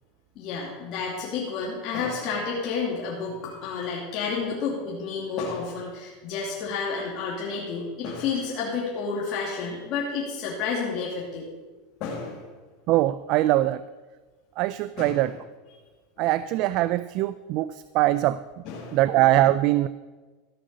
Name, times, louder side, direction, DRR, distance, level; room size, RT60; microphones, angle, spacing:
voice 1, 0.4-11.5 12.0-12.5 15.0-15.3 16.2-16.3 18.6-19.0, left 5 dB, 45° left, -4 dB, 2.5 m, -30 dB
voice 2, 12.9-13.8 14.6-15.3 16.2-18.4 18.9-19.9, right 15 dB, 50° right, 16 dB, 0.3 m, -22 dB
14.0 x 6.3 x 6.7 m, 1.3 s
supercardioid pair, 140°, 0 cm